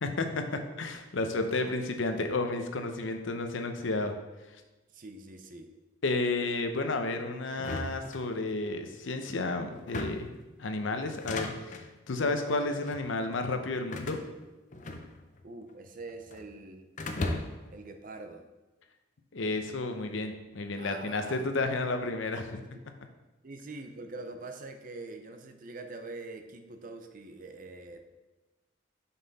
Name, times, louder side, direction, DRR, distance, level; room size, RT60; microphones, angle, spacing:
voice 1, 0.0-4.1 6.0-10.3 10.6-14.2 19.3-22.6, left 2 dB, 80° left, 6 dB, 0.7 m, -32 dB
voice 2, 4.9-5.7 15.4-16.9 17.7-18.4 20.8-21.5 22.5-22.7 23.4-28.0, right 2 dB, 45° right, 6 dB, 0.6 m, -44 dB
sound 1, 7.6-8.7 9.7-10.4 11.1-11.9 12.7-13.1 13.9-15.4 15.7-16.5 17.0-17.7, left 2 dB, 40° left, 0.6 m, -37 dB
5.7 x 5.6 x 4.1 m, 1.1 s
head